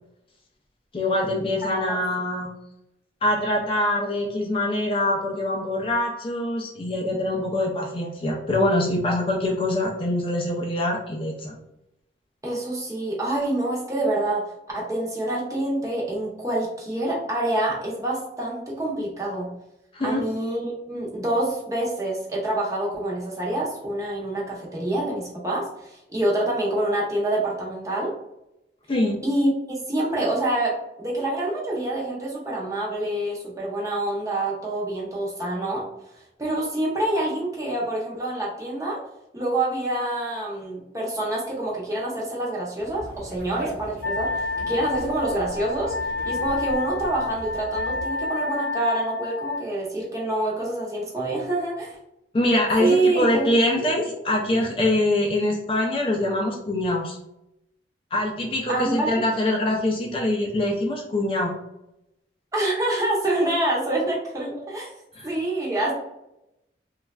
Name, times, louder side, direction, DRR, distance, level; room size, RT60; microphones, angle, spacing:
voice 1, 0.9-2.5 3.2-11.6 19.9-20.2 28.9-29.2 52.3-57.2 58.1-61.5 65.1-65.3, left 1 dB, 30° left, 0 dB, 0.4 m, -24 dB
voice 2, 12.4-19.5 20.0-28.1 29.2-35.9 36.4-39.0 39.3-45.9 46.3-52.0 52.8-53.5 58.7-59.2 62.5-64.9 65.2-65.9, right 1 dB, 20° right, -4 dB, 0.7 m, -26 dB
Conversation, 42.8-48.1, right 1 dB, 60° right, 0.9 m, -39 dB
Wind instrument woodwind instrument, 44.0-49.7, left 3 dB, 90° left, 0.7 m, -29 dB
3.1 x 2.3 x 2.2 m, 0.86 s
head